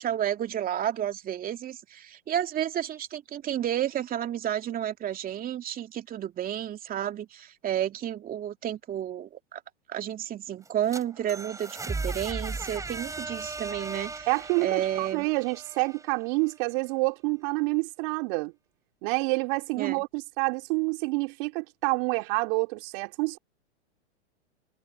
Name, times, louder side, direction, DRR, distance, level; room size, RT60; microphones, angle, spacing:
voice 1, 0.0-9.6 9.9-14.3 14.6-15.3 19.8-20.0, right 11 dB, 25° right, 2.7 m, -31 dB
sound 1, 10.6-16.5, right 3 dB, 10° right, 7.9 m, -37 dB
voice 2, 14.3-18.5 19.0-23.4, right 29 dB, 50° right, 2.8 m, -28 dB
hypercardioid pair, 115°, 34 cm